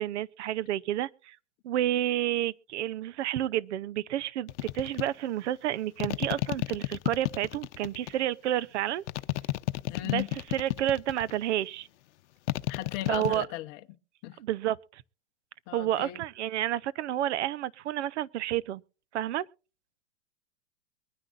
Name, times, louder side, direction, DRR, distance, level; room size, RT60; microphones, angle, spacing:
voice 1, 0.0-1.4 1.6-9.0 10.0-10.2 10.5-11.9 13.1-13.5 14.4-15.0 15.7-18.8 19.1-19.5, right 12 dB, 70° right, 0.7 m, -30 dB
sound 1, 4.5-5.1 6.0-8.1 9.1-11.4 12.5-13.4, left 16 dB, 70° left, 0.8 m, -31 dB
voice 2, 9.9-10.3 12.7-13.8 14.2-14.4 15.7-16.2, left 16 dB, 35° left, 0.9 m, -36 dB
23.5 x 9.9 x 2.5 m
supercardioid pair, 145°, 36 cm